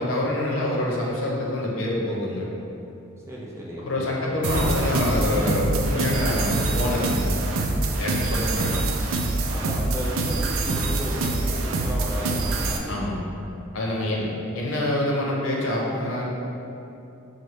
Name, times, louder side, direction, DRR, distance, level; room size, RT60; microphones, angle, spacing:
voice 1, 0.0-2.5 3.8-7.3 8.0-8.8 12.9-13.2 13.7-14.3 14.5-16.3, left 1 dB, 75° left, -3 dB, 0.7 m, -26 dB
voice 2, 3.3-4.5 8.3-8.8 9.5-12.9 14.1-14.4, equal, 15° right, -5 dB, 0.5 m, -35 dB
sound 1, 4.4-12.8, right 2 dB, 85° right, 0.4 m, -25 dB
sound 2, 4.5-9.3, equal, 15° left, 1.0 m, -37 dB
sound 3, 5.1-8.9, equal, 40° left, 0.5 m, -35 dB
6.0 x 2.1 x 3.2 m, 2.8 s
head